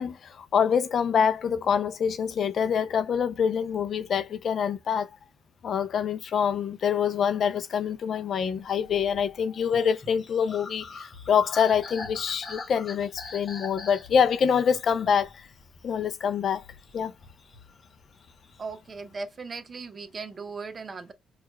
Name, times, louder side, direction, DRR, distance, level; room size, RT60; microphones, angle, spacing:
voice 1, 0.0-5.1 5.6-15.3 15.8-16.6 16.9-17.1, left 7 dB, 60° left, 0.4 m, -25 dB
sound 1, 9.6-16.0 16.5-17.9 18.1-18.8, left 3 dB, 40° left, 0.9 m, -43 dB
voice 2, 18.6-21.1, right 4 dB, 35° right, 0.5 m, -38 dB
4.5 x 2.3 x 2.2 m
cardioid pair, 90°, 0 cm